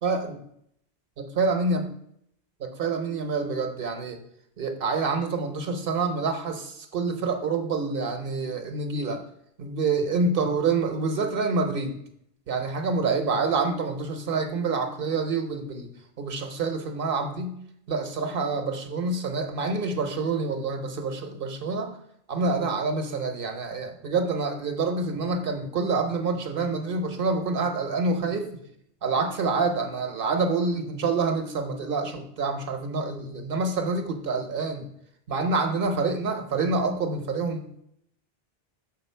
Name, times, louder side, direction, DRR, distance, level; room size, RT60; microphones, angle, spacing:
voice 1, 0.0-0.4 1.4-1.9 2.6-4.2 4.6-9.2 9.6-12.0 12.5-15.9 16.2-17.6 17.9-22.0 22.3-28.5 29.0-34.9 35.3-37.6, right 4 dB, 65° right, 6 dB, 1.0 m, -27 dB
6.2 x 3.9 x 5.4 m, 0.71 s
omnidirectional pair, 1.0 m